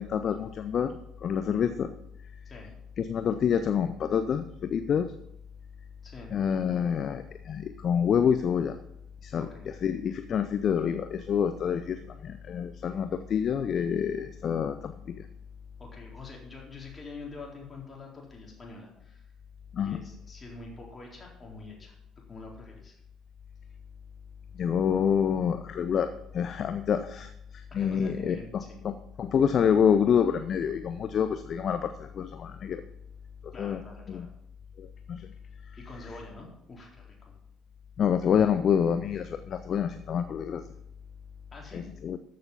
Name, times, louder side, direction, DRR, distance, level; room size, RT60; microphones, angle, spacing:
voice 1, 0.0-1.9 3.0-5.1 6.3-8.8 9.2-15.2 19.7-20.0 24.5-32.8 33.6-33.8 34.1-34.3 34.8-35.3 38.0-40.6 41.7-42.2, left 7 dB, 45° left, 10 dB, 0.6 m, -27 dB
voice 2, 6.0-6.3 9.4-9.7 15.8-19.3 19.8-22.0 22.3-23.0 27.7-28.8 33.5-34.3 35.8-37.3 41.5-41.8, left 3 dB, 25° left, -1 dB, 4.0 m, -46 dB
13.5 x 6.7 x 5.7 m, 0.77 s
figure-of-eight pair, 55°, 0 cm